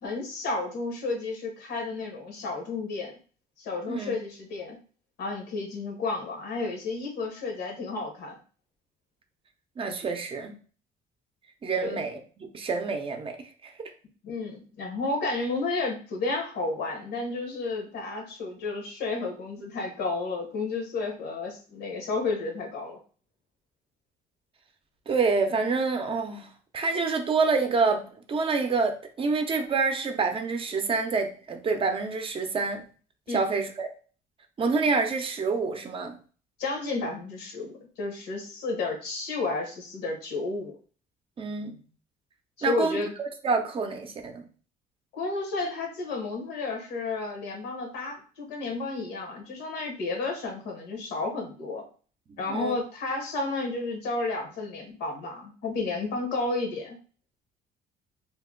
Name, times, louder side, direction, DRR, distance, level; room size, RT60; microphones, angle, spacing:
voice 1, 0.0-3.1 3.6-4.8 5.2-8.3 11.8-12.0 14.2-23.0 33.3-33.4 36.6-40.8 42.6-43.1 45.1-51.8 52.4-57.0, left 3 dB, 75° left, 2 dB, 1.1 m, -32 dB
voice 2, 9.8-10.6 11.6-13.9 25.1-32.8 33.3-33.9 34.6-36.2 41.4-41.8 42.6-44.5 52.3-52.8, right 4 dB, 35° right, 5 dB, 0.5 m, -27 dB
2.8 x 2.1 x 3.6 m, 0.40 s
cardioid pair, 110°, 17 cm